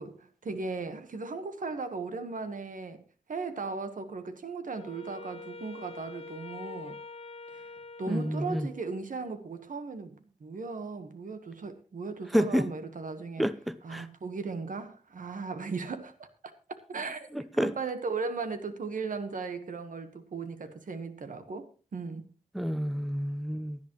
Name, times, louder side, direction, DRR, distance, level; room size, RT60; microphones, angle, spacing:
voice 1, 0.0-3.0 3.3-7.0 7.5-7.7 8.0-13.4 13.8-16.3 16.9-21.7 21.9-22.3, right 4 dB, 85° right, 1.3 m, -37 dB
Wind instrument woodwind instrument, 4.7-9.1, left 3 dB, 50° left, 0.7 m, -45 dB
voice 2, 8.1-8.7 12.3-12.7 13.4-14.1 17.3-17.7 22.5-23.8, equal, ahead, 0.6 m, -29 dB
16.5 x 10.5 x 3.1 m
wide cardioid pair, 80°, 13 cm